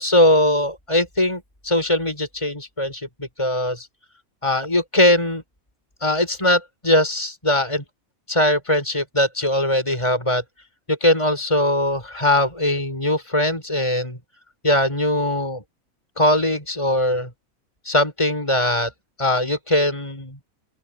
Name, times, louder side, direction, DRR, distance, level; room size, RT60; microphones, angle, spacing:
voice 1, 0.0-3.9 4.4-5.4 6.0-7.8 8.3-10.4 10.9-14.2 14.6-15.6 16.2-17.3 17.9-18.9 19.2-20.4, left 1 dB, 20° left, 6.8 m, -20 dB
open air
omnidirectional pair, 1.4 m